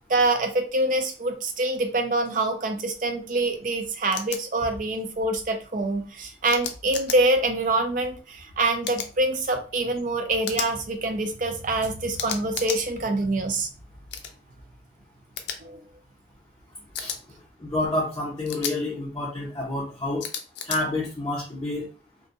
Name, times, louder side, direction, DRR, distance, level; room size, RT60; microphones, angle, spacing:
voice 1, 0.1-13.7 15.6-15.8, right 2 dB, 45° right, 6 dB, 0.4 m, -25 dB
sound 1, 4.1-4.4 6.5-7.2 8.8-9.1 10.4-10.7 12.2-12.8 14.1-14.3 15.4-15.6 16.9-17.2 18.4-18.7 20.2-20.8, left 7 dB, 70° left, 0.4 m, -32 dB
voice 2, 17.6-20.3 20.6-21.9, left 2 dB, 20° left, -7 dB, 0.6 m, -28 dB
2.5 x 2.2 x 2.7 m, 0.37 s
head